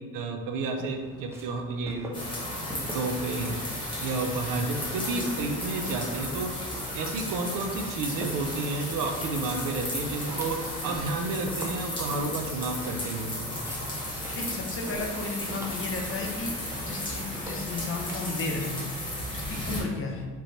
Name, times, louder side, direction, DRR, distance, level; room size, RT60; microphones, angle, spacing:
voice 1, 0.0-2.2 2.9-3.5 4.0-6.5 6.9-13.4, right 3 dB, 75° right, 4 dB, 0.6 m, -31 dB
Walk footsteps, 0.6-18.3, equal, 10° right, 0.5 m, -43 dB
sound 1, 2.1-19.8, left 1 dB, 15° left, 1.1 m, -34 dB
voice 2, 14.3-18.9 19.3-20.3, left 3 dB, 40° left, 1 dB, 0.7 m, -34 dB
5.3 x 3.0 x 3.1 m, 1.5 s
cardioid pair, 165°, 33 cm